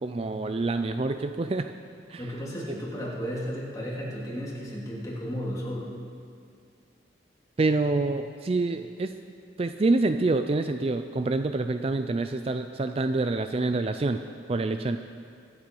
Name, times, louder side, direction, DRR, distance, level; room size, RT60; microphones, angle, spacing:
voice 1, 0.0-1.7 2.1-2.2 7.6-9.1 9.6-14.2 14.5-15.0, right 3 dB, 30° right, 8 dB, 0.4 m, -26 dB
voice 2, 2.2-5.9, equal, 20° left, -5 dB, 2.9 m, -34 dB
24.0 x 8.2 x 5.4 m, 2.3 s
head